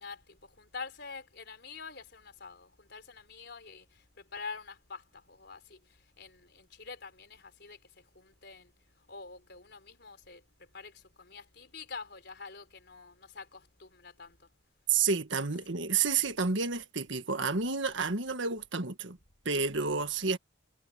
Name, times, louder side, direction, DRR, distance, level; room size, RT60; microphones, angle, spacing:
voice 1, 0.0-4.0 4.3-5.8 6.2-7.8 8.1-8.7 9.1-10.4 10.7-14.5, left 4 dB, 55° left, 4.2 m, -46 dB
voice 2, 14.9-19.2 19.4-20.4, right 5 dB, 65° right, 1.7 m, -30 dB
head